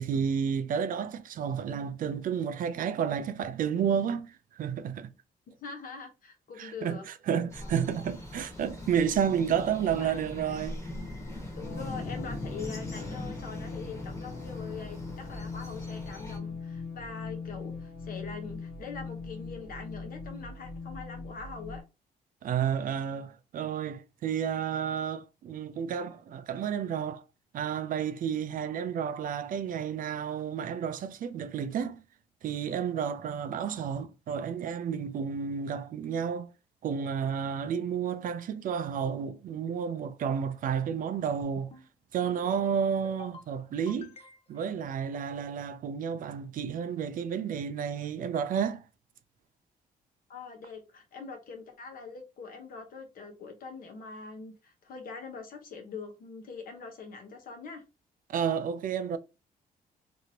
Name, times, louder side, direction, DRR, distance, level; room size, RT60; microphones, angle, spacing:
voice 1, 0.0-5.1 6.6-10.9 22.4-27.2 27.5-32.0 32.4-36.5 36.8-41.7 42.1-44.1 44.5-48.8 58.3-59.2, right 7 dB, 60° right, 0.4 m, -31 dB
voice 2, 5.5-7.0 7.6-7.7 9.9-10.2 11.6-21.8 50.3-57.8, left 5 dB, 65° left, 1.0 m, -43 dB
sound 1, 7.5-16.4, left 2 dB, 20° left, 1.3 m, -41 dB
sound 2, 11.6-21.8, left 4 dB, 85° left, 0.9 m, -41 dB
sound 3, 41.4-41.9 42.2-42.7 43.0-43.5 43.9-44.6, left 4 dB, 40° left, 0.6 m, -49 dB
2.9 x 2.6 x 2.8 m
cardioid pair, 90°, 16 cm